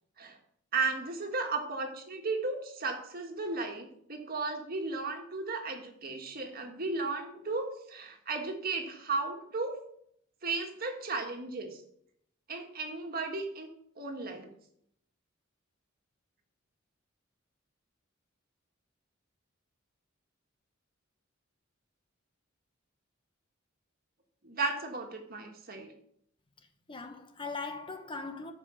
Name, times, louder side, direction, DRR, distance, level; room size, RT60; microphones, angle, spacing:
voice 1, 0.7-9.7 10.4-11.8 12.5-13.7 14.0-14.5 24.4-25.9, right 3 dB, 45° right, 1.8 m, -35 dB
voice 2, 26.6-28.5, left 4 dB, 25° left, 1.0 m, -40 dB
13.5 x 5.4 x 5.8 m
head